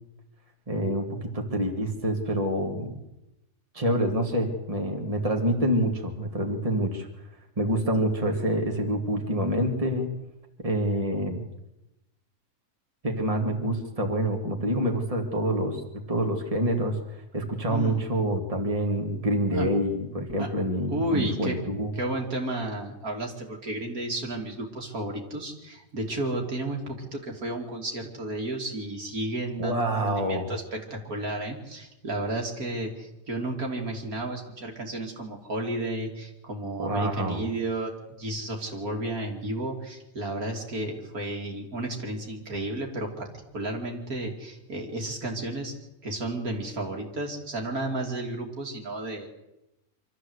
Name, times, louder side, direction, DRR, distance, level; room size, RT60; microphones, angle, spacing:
voice 1, 0.7-3.0 3.7-7.1 7.6-10.1 10.6-11.4 13.0-15.8 16.1-17.0 17.3-21.9 29.6-30.5 36.8-37.4, right 1 dB, 25° right, 2 dB, 2.4 m, -27 dB
voice 2, 20.9-21.6 21.9-43.3 43.5-45.7 46.0-49.3, right 1 dB, 75° right, 1 dB, 3.4 m, -32 dB
25.0 x 13.5 x 8.1 m, 0.95 s
omnidirectional pair, 1.5 m